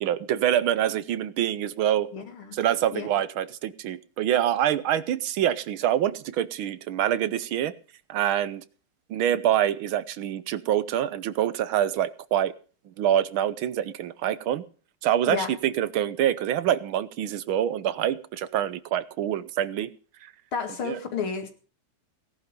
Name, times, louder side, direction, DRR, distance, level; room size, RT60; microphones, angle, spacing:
voice 1, 0.0-2.1 2.5-7.7 8.1-8.6 9.1-12.5 13.0-14.6 15.0-19.9 20.2-20.3 20.8-21.0, right 11 dB, 80° right, 1.7 m, -25 dB
voice 2, 2.1-2.5 2.9-3.1 15.3-15.5 20.5-21.5, left 6 dB, 90° left, 3.1 m, -31 dB
17.5 x 11.0 x 5.2 m
omnidirectional pair, 2.3 m